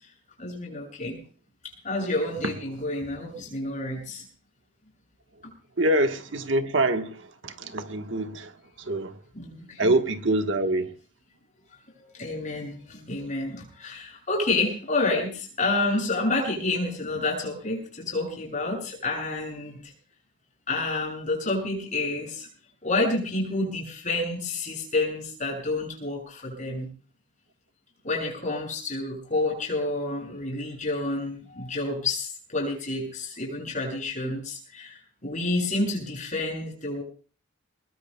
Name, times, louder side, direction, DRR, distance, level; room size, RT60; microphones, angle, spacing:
voice 1, 0.4-1.2 1.8-4.2 9.3-9.9 12.0-19.9 20.7-22.5 22.8-26.9 28.0-37.0, left 2 dB, 40° left, 6.9 m, -29 dB
voice 2, 5.8-8.5 8.8-9.1 9.8-10.9, right 1 dB, 75° right, 1.2 m, -25 dB
23.0 x 21.0 x 2.2 m
head